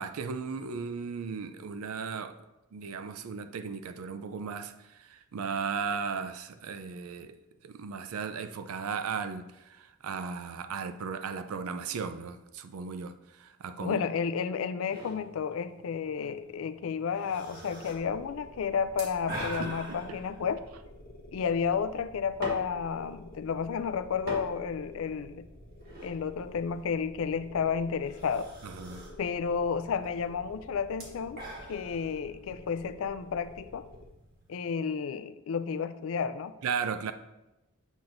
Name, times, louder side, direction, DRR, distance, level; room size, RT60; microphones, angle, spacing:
voice 1, 0.0-2.4 2.7-7.3 7.6-14.0 19.6-20.2 28.6-29.1 36.6-37.1, right 5 dB, 80° right, 0.4 m, -36 dB
voice 2, 13.8-20.6 21.3-25.4 26.0-28.5 29.2-31.4 31.7-33.8 34.5-36.5, left 6 dB, 65° left, 0.4 m, -31 dB
Coffee Slurping, 14.9-34.6, right 1 dB, 45° right, 1.4 m, -46 dB
sound 1, 17.9-34.1, left 1 dB, 45° left, 1.0 m, -51 dB
7.1 x 6.0 x 2.5 m
head